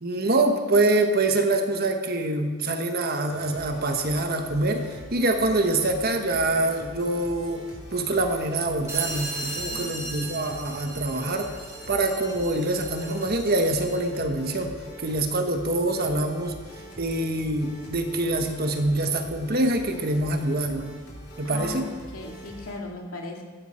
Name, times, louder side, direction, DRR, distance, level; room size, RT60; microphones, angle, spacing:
voice 1, 0.0-7.6 7.9-11.5 11.9-16.5 17.0-21.0 21.4-21.9, right 2 dB, 45° right, 5 dB, 1.4 m, -25 dB
sound 1, 3.3-22.8, equal, 50° left, 3.5 m, -44 dB
sound 2, 8.9-14.1, right 2 dB, 10° right, 1.5 m, -37 dB
voice 2, 9.7-10.5 21.4-23.4, left 2 dB, 90° left, 0 dB, 2.5 m, -38 dB
15.0 x 14.5 x 4.5 m, 1.5 s
head